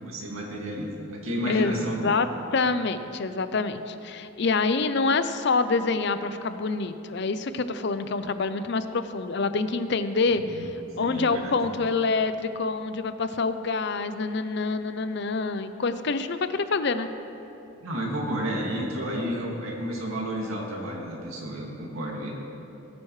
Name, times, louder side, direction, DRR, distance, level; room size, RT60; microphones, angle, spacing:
voice 1, 0.0-2.1 10.4-10.7 11.0-11.5 17.8-22.3, equal, 90° right, -2 dB, 2.3 m, -31 dB
voice 2, 1.5-2.3 2.5-10.7 11.0-17.1, left 4 dB, 55° left, 11 dB, 0.5 m, -26 dB
19.5 x 9.5 x 3.2 m, 2.9 s
head